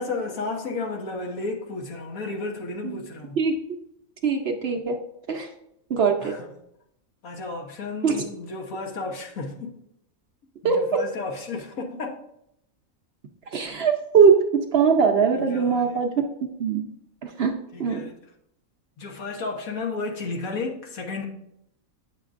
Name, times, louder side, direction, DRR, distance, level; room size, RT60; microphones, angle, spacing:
voice 1, 0.0-3.4 6.2-6.5 7.2-9.8 10.6-12.2 15.3-16.0 17.7-18.2 19.0-21.2, left 3 dB, 75° left, 1.5 m, -33 dB
voice 2, 4.2-5.0 5.3-5.5 5.9-6.3 8.0-8.2 10.6-11.0 13.5-16.1 16.4-16.9 17.2-18.0, right 6 dB, 55° right, 0.8 m, -21 dB
9.2 x 6.5 x 2.5 m
omnidirectional pair, 1.5 m